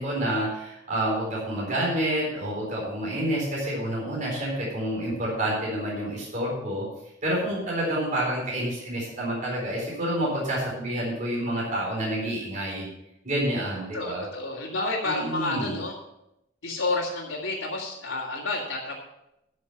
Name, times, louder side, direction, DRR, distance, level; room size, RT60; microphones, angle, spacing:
voice 1, 0.0-6.9 7.2-12.9 13.2-14.3 15.0-15.7, right 1 dB, 40° right, -5 dB, 4.3 m, -28 dB
voice 2, 13.9-15.9 16.6-18.9, left 2 dB, 90° left, -8 dB, 2.4 m, -30 dB
13.0 x 6.5 x 5.8 m, 0.86 s
head